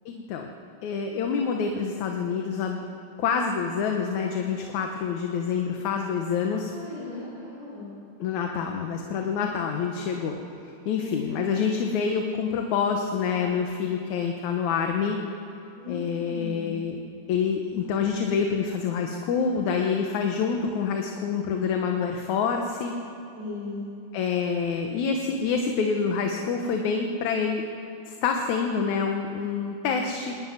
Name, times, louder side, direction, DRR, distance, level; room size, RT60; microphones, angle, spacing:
voice 1, 0.1-0.5 0.8-2.8 3.2-6.7 8.2-10.4 10.9-15.2 15.9-17.0 17.3-23.0 24.1-27.7 28.1-30.4, left 6 dB, 70° left, 3 dB, 2.4 m, -27 dB
voice 2, 6.7-7.9 10.9-11.7 15.8-16.8 23.3-23.9, left 2 dB, 80° right, -9 dB, 7.9 m, -37 dB
26.0 x 12.0 x 9.4 m, 2.6 s
omnidirectional pair, 3.6 m